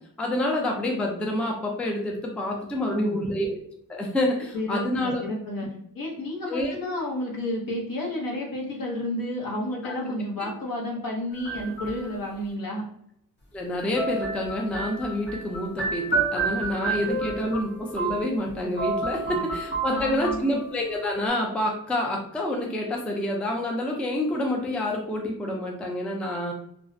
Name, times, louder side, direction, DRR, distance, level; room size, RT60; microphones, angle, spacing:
voice 1, 0.2-3.6 3.9-5.2 6.5-6.7 9.8-10.0 13.5-26.5, left 1 dB, 5° left, 0 dB, 0.3 m, -28 dB
voice 2, 2.8-3.2 4.5-5.7 5.9-12.8 16.7-16.9 19.2-19.4 19.9-20.4, left 1 dB, 70° left, -2 dB, 0.9 m, -31 dB
sound 1, 11.3-12.3 13.9-18.5 18.8-20.9, right 3 dB, 30° left, 0.8 m, -30 dB
2.4 x 2.0 x 2.5 m, 0.71 s
wide cardioid pair, 120°, 35 cm